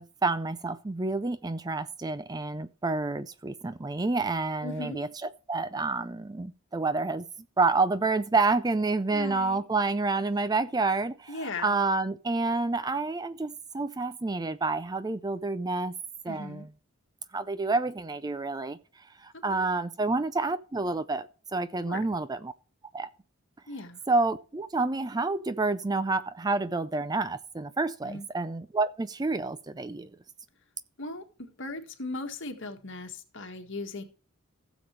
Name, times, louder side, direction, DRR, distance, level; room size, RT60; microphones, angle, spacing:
voice 1, 0.0-5.1 5.5-7.3 7.6-15.9 16.2-16.7 17.3-18.8 19.2-21.3 21.5-22.5 22.9-23.1 24.1-30.1, right 3 dB, 20° right, 0.4 m, -29 dB
voice 2, 4.6-5.0 9.1-9.6 11.3-11.8 16.3-16.7 19.5-19.7 21.8-22.0 23.7-24.0 28.0-28.3 31.0-34.0, left 2 dB, 55° left, 1.8 m, -38 dB
16.5 x 7.2 x 3.3 m
head